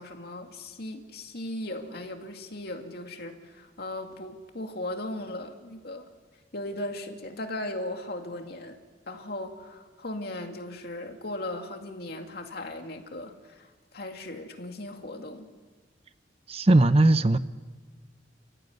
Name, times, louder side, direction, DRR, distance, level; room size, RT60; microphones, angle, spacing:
voice 1, 0.0-6.1 6.5-8.8 9.1-15.5, left 1 dB, 55° left, 4 dB, 2.5 m, -37 dB
voice 2, 16.5-17.4, right 2 dB, 35° right, 12 dB, 0.7 m, -19 dB
29.5 x 14.5 x 9.5 m, 1.4 s
head